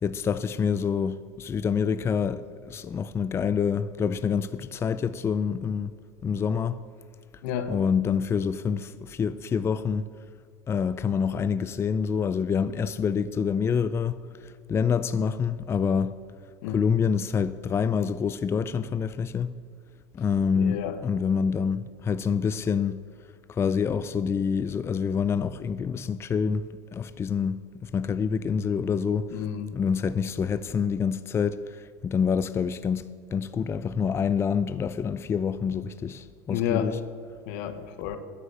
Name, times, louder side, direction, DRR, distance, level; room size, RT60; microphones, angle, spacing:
voice 1, 0.0-5.9 6.2-6.8 7.7-10.1 10.7-16.1 16.7-19.5 20.1-23.0 23.5-29.4 29.7-37.0, left 6 dB, 25° left, 0.4 m, -27 dB
voice 2, 7.4-7.8 16.6-16.9 20.5-21.0 29.3-29.7 36.5-36.9 37.5-38.2, left 9 dB, 80° left, 1.1 m, -30 dB
9.9 x 7.5 x 8.1 m
supercardioid pair, 100°, 10 cm